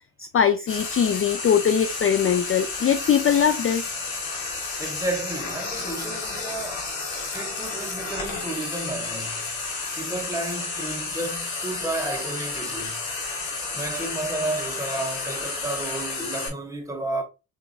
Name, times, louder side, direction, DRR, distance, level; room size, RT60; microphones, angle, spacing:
voice 1, 0.2-3.8, left 8 dB, 30° left, 0.5 m, -21 dB
Frying (food), 0.7-16.5, left 4 dB, 85° left, 1.9 m, -31 dB
voice 2, 4.8-6.8 7.3-9.5 10.0-13.0 13.7-17.2, right 2 dB, 5° right, 1.5 m, -32 dB
5.0 x 3.8 x 2.4 m
supercardioid pair, 75°, 43 cm